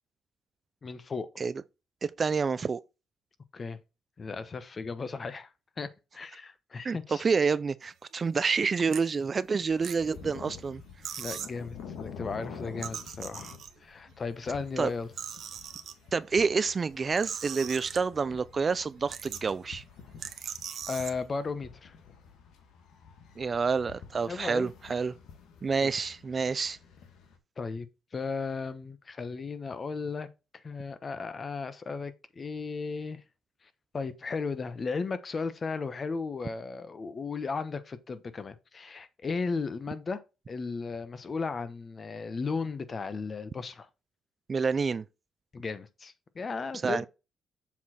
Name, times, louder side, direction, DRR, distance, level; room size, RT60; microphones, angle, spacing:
voice 1, 0.8-1.3 3.5-3.8 4.2-5.5 5.8-7.2 11.2-15.1 20.9-21.9 24.3-24.7 25.8-25.9 27.6-27.9 28.1-30.3 30.6-33.2 33.9-40.2 40.5-43.9 45.5-47.1, left 4 dB, 35° left, 0.9 m, -35 dB
voice 2, 2.0-2.8 6.8-10.8 14.8-14.9 16.1-19.8 23.4-25.1 25.6-26.8 44.5-45.0 46.8-47.1, right 5 dB, 40° right, 0.4 m, -28 dB
sound 1, 8.3-8.5 8.9-9.0 9.6-10.4 10.7-10.8 11.0-11.6 12.6-13.9 14.6-15.9 16.9-18.3 18.7-18.8 19.1-19.6 20.2-21.2, right 8 dB, 65° right, 0.9 m, -40 dB
sound 2, 10.0-27.4, left 6 dB, 80° left, 1.5 m, -49 dB
7.4 x 4.1 x 4.3 m
cardioid pair, 90°, 0 cm